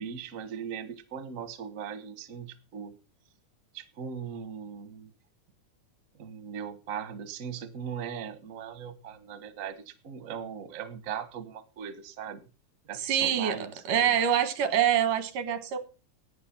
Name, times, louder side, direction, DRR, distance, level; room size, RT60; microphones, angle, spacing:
voice 1, 0.0-2.9 3.7-5.1 6.2-12.4 12.9-14.1, right 7 dB, 55° right, 0.9 m, -39 dB
voice 2, 12.9-15.8, right 9 dB, 85° right, 3.0 m, -26 dB
13.5 x 8.9 x 6.0 m
omnidirectional pair, 3.6 m